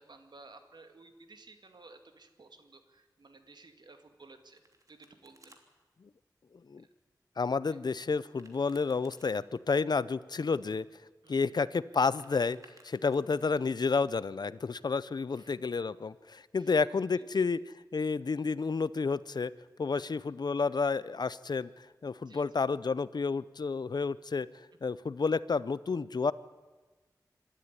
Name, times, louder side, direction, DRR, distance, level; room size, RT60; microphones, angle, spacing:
voice 1, 0.0-4.6 4.9-5.6 7.6-7.8 11.2-11.5 15.3-15.5 16.6-16.7 17.1-17.4 19.9-20.0 22.3-22.4, right 3 dB, 75° right, 7 dB, 2.2 m, -55 dB
Domestic sounds home sounds, 4.2-5.6 8.2-9.3 11.9-13.5, right 2 dB, 50° right, 2.9 m, -61 dB
voice 2, 7.4-10.8 11.3-12.6 12.8-17.6 17.9-19.5 19.8-24.5 24.8-26.3, left 4 dB, 70° left, 18 dB, 0.6 m, -30 dB
25.5 x 12.5 x 9.8 m, 1.3 s
wide cardioid pair, 65°, 7 cm